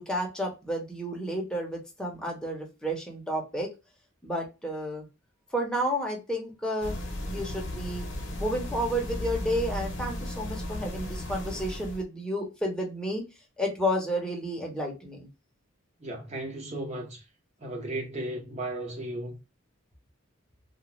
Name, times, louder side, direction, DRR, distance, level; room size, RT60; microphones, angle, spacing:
voice 1, 0.0-3.7 4.2-5.0 5.5-6.9 7.2-8.1 8.4-13.2 13.6-15.3, equal, 5° left, 0.8 m, -31 dB
sound 1, 6.8-12.0, left 1 dB, 65° left, 0.7 m, -35 dB
voice 2, 16.0-17.2 17.6-19.4, right 1 dB, 35° right, 1.0 m, -35 dB
2.5 x 2.3 x 3.0 m
head